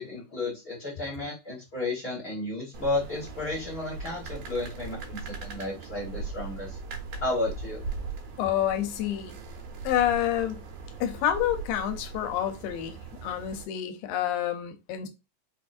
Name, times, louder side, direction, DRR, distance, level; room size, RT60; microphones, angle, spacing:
voice 1, 0.0-6.8 7.2-7.8, left 2 dB, 55° left, 1.0 m, -32 dB
sound 1, 2.7-13.6, right 4 dB, 85° right, 2.5 m, -39 dB
voice 2, 8.4-9.3 9.8-10.6 11.0-15.1, left 11 dB, 90° left, 2.4 m, -28 dB
5.5 x 2.3 x 2.5 m
omnidirectional pair, 4.0 m